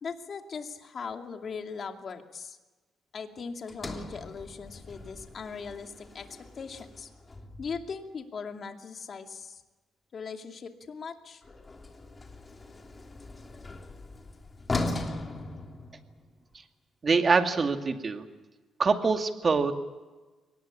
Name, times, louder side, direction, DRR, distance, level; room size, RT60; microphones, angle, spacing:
voice 1, 0.0-2.6 3.1-7.1 7.6-9.6 10.1-11.4, left 5 dB, 50° left, 5 dB, 2.5 m, -39 dB
Sliding door, 3.7-7.9 11.4-16.4, left 2 dB, 25° left, 3.1 m, -39 dB
voice 2, 17.0-18.2 18.8-19.7, right 4 dB, 35° right, 6 dB, 2.3 m, -24 dB
23.0 x 19.0 x 8.7 m, 1.2 s
cardioid pair, 90°, 0 cm